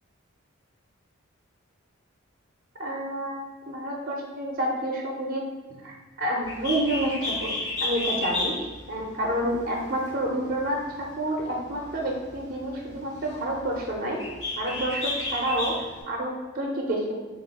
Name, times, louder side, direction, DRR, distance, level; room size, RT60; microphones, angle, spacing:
voice 1, 2.8-5.4 5.8-7.5 7.8-14.2 14.6-17.1, right 1 dB, 40° right, -1 dB, 0.5 m, -29 dB
Bird, 6.4-16.0, left 2 dB, 55° left, 0.9 m, -33 dB
3.5 x 2.3 x 4.0 m, 1.4 s
head